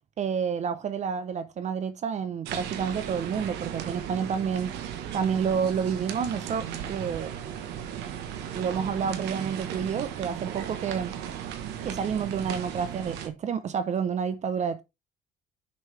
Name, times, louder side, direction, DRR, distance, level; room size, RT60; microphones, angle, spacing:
voice 1, 0.2-4.7 5.1-7.3 8.5-11.1 11.8-14.8, right 7 dB, 45° right, 0.6 m, -29 dB
sound 1, 2.5-13.3, right 9 dB, 90° right, 1.1 m, -36 dB
6.7 x 5.3 x 3.2 m
cardioid pair, 110°, 17 cm